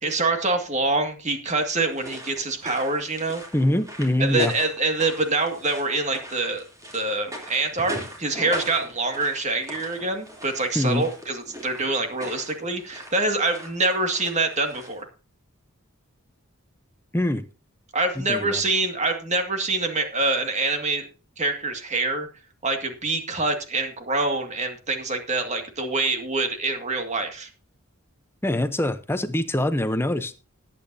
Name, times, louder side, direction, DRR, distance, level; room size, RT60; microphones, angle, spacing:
voice 1, 0.0-3.4 4.2-6.6 6.9-15.1 17.9-21.1 21.4-22.3 22.6-27.5, right 3 dB, 30° right, 5 dB, 2.1 m, -25 dB
sound 1, 1.7-15.0, equal, 15° right, 3.1 m, -40 dB
voice 2, 3.5-4.5 10.7-11.1 17.1-17.5 18.2-18.6 28.4-30.3, left 1 dB, 10° left, 11 dB, 0.8 m, -24 dB
19.5 x 8.7 x 2.8 m, 0.33 s
head